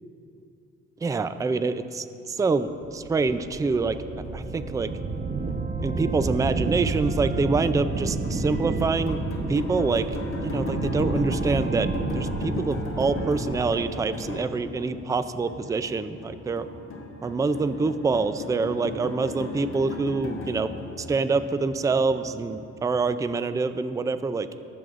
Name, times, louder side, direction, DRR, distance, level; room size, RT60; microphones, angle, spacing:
voice 1, 1.0-4.0 4.3-4.9 5.8-9.2 9.5-10.1 10.4-11.9 12.1-16.7 17.2-24.6, right 4 dB, 10° right, 12 dB, 0.4 m, -26 dB
sound 1, 2.8-14.9, right 3 dB, 30° right, 0.8 m, -30 dB
sound 2, 3.4-23.3, left 2 dB, 45° left, 1.4 m, -37 dB
21.0 x 7.7 x 2.5 m, 2.6 s
cardioid pair, 90°, 30 cm